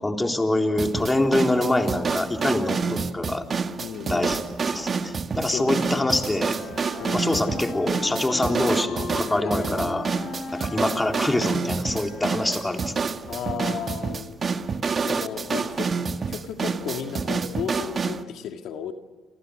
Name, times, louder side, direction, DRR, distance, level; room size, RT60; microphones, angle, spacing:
voice 1, 0.0-3.4 4.1-4.4 4.7-6.6 7.1-10.1 10.5-12.9, left 1 dB, 15° left, 3 dB, 3.8 m, -25 dB
sound 1, 0.8-18.2, right 5 dB, 45° right, 1.6 m, -28 dB
voice 2, 3.8-4.4 5.5-6.1 7.0-7.4 9.4-9.7 13.3-14.4 15.0-15.9 16.3-18.9, left 8 dB, 85° left, 5 dB, 2.0 m, -34 dB
sound 2, 5.6-13.0, left 5 dB, 65° left, 4.5 m, -38 dB
30.0 x 26.5 x 6.5 m, 1.4 s
cardioid pair, 90°, 0 cm